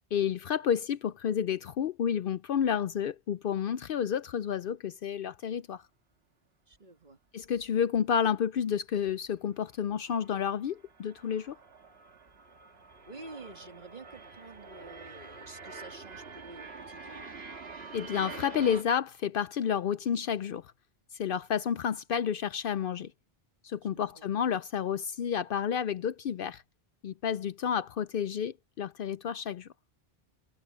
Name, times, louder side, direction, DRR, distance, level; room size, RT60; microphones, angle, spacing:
voice 1, 0.1-5.8 7.3-11.6 17.9-20.7 21.2-23.1 23.6-26.6 27.0-29.7, left 8 dB, 65° left, 0.7 m, -30 dB
voice 2, 6.7-7.2 13.0-17.3 23.9-24.3, right 2 dB, 45° right, 2.5 m, -49 dB
sound 1, 6.7-6.8 7.4-7.7 7.9-8.0 8.7-8.8 9.1-9.4 9.7-18.8, right 4 dB, 70° right, 2.0 m, -47 dB
omnidirectional pair, 1.1 m